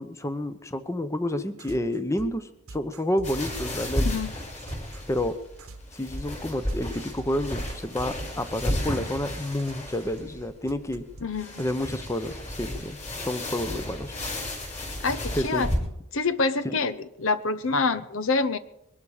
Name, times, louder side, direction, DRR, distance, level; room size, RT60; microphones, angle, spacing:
voice 1, 0.0-4.1 5.1-5.4 5.9-11.0 11.6-14.1 15.4-15.7 16.6-16.7, left 1 dB, 15° left, 11 dB, 0.8 m, -29 dB
sound 1, 1.6-12.0, right 2 dB, 85° right, 1.2 m, -45 dB
sound 2, 3.2-15.8, left 1 dB, 30° left, 5.1 m, -33 dB
voice 2, 4.0-4.3 11.2-11.6 15.0-15.7 16.1-18.6, left 3 dB, 70° left, 14 dB, 0.8 m, -26 dB
21.5 x 12.5 x 5.0 m, 0.83 s
head